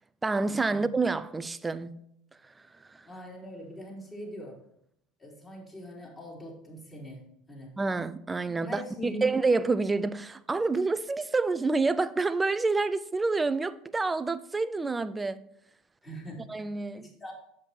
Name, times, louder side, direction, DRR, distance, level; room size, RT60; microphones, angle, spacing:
voice 1, 0.2-2.0 2.5-2.6 2.8-3.1 7.8-15.4 16.5-17.1, right 3 dB, 15° right, 0.5 m, -28 dB
voice 2, 3.0-4.6 5.2-7.7 8.6-9.3 16.0-16.7 17.0-17.3, equal, 20° left, 3.9 m, -42 dB
7.9 x 7.6 x 4.5 m
hypercardioid pair, 85°, 0 cm